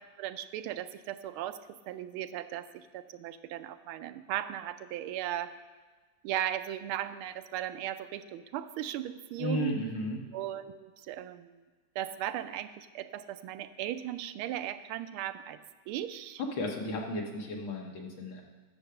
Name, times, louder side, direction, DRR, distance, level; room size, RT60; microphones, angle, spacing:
voice 1, 0.2-1.6 1.9-5.5 6.2-9.8 10.3-11.6 11.9-15.6 15.9-16.4 16.8-16.9, right 12 dB, 90° right, 11 dB, 1.5 m, -37 dB
voice 2, 9.4-10.2 16.4-18.4, left 1 dB, 70° left, 0 dB, 2.2 m, -34 dB
10.0 x 7.2 x 6.8 m, 1.4 s
omnidirectional pair, 2.3 m